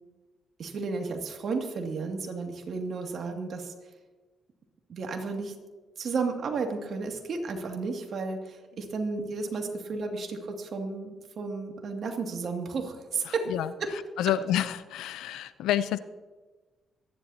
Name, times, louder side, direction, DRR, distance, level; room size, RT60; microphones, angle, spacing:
voice 1, 0.6-3.7 4.9-5.5 6.0-13.5 13.8-13.9, right 4 dB, 60° right, 3 dB, 2.4 m, -33 dB
voice 2, 13.2-16.0, left 11 dB, 90° left, 14 dB, 0.6 m, -29 dB
25.5 x 11.0 x 2.9 m, 1.3 s
cardioid pair, 75°, 0 cm